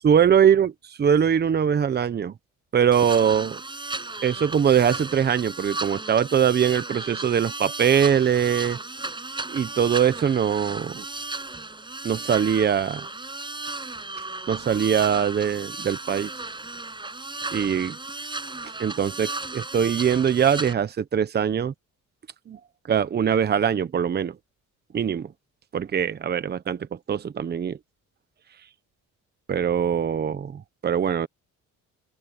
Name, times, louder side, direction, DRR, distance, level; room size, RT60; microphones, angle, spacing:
voice 1, 0.0-0.7 1.0-2.3 2.7-3.6 4.2-8.8 9.5-11.0 12.0-13.1 14.5-16.3 17.5-18.0 18.8-21.7 22.5-22.6 22.9-24.3 24.9-25.3 25.7-27.8 29.5-31.3, right 8 dB, 30° right, 1.0 m, -22 dB
sound 1, 2.9-20.7, right 3 dB, 15° right, 8.0 m, -35 dB
open air
cardioid pair, 125°, 31 cm